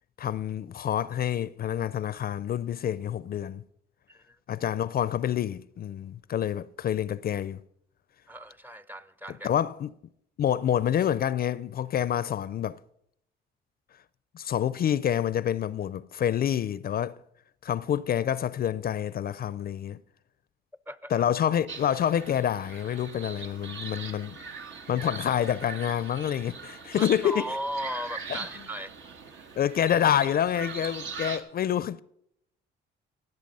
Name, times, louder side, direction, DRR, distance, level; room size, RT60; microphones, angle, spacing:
voice 1, 0.2-3.6 4.5-7.6 9.4-9.9 10.4-12.8 14.3-17.2 17.6-20.0 21.1-24.4 24.9-27.5 28.3-28.4 29.6-32.0, left 10 dB, 50° left, 0.4 m, -27 dB
voice 2, 4.1-4.4 8.3-9.5 20.9-21.1 27.0-28.9, equal, 10° right, 0.5 m, -36 dB
sound 1, 21.7-31.4, right 5 dB, 75° right, 1.4 m, -41 dB
17.0 x 8.0 x 5.4 m
cardioid pair, 90°, 20 cm